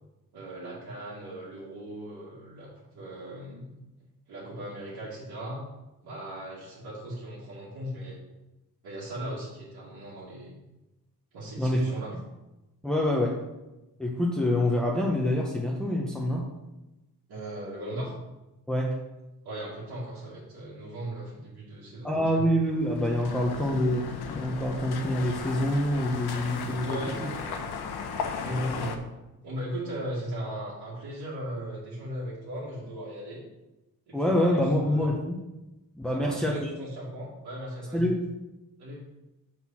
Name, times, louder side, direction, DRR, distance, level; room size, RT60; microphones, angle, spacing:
voice 1, 0.3-3.7 4.3-5.6 6.0-8.2 8.8-10.5 11.3-12.1 17.3-18.1 19.4-22.5 26.8-27.6 28.4-29.0 29.4-33.4 34.1-35.1 36.1-38.1 38.8-39.0, right 1 dB, 85° right, -8 dB, 2.0 m, -38 dB
voice 2, 12.8-13.4 14.0-16.4 18.7-18.9 22.0-27.3 34.1-35.4 36.0-36.7 37.9-38.3, left 1 dB, ahead, -3 dB, 0.8 m, -26 dB
sound 1, 22.7-29.0, left 5 dB, 80° left, 0.8 m, -36 dB
6.7 x 4.3 x 5.7 m, 1.0 s
wide cardioid pair, 150°, 38 cm